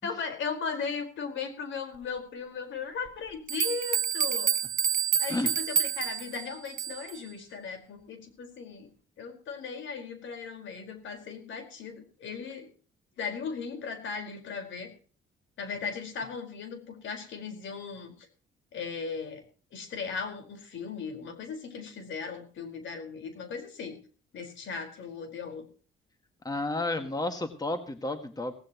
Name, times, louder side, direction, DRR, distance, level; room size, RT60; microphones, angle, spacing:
voice 1, 0.0-4.5 5.2-8.9 9.2-12.7 13.2-14.9 15.6-18.1 18.7-19.4 19.7-24.0 24.3-25.6, left 5 dB, 75° left, 6 dB, 4.7 m, -37 dB
sound 1, 3.1-3.2 3.5-7.2, right 8 dB, 45° right, 0.6 m, -28 dB
voice 2, 26.4-28.5, left 2 dB, 20° left, 7 dB, 1.9 m, -31 dB
17.5 x 16.5 x 3.0 m, 0.39 s
cardioid pair, 90°, 20 cm